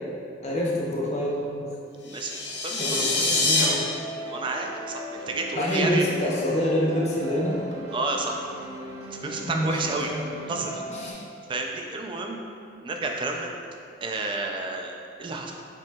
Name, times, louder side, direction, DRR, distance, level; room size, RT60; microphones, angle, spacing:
voice 1, 0.4-1.7 2.8-3.8 5.5-7.6 9.4-9.8 10.0-10.1 10.9-11.2, equal, 40° left, -3 dB, 0.6 m, -26 dB
voice 2, 2.0-3.4 4.3-6.0 7.9-8.4 9.2-10.1 10.5-10.8 11.5-12.4 12.8-13.5 14.0-15.5, right 2 dB, 30° right, 2 dB, 0.3 m, -31 dB
sound 1, 2.1-3.6, left 3 dB, 75° left, 0.6 m, -25 dB
sound 2, 3.4-11.1, equal, 70° right, 0.7 m, -38 dB
5.2 x 2.8 x 2.2 m, 2.4 s
head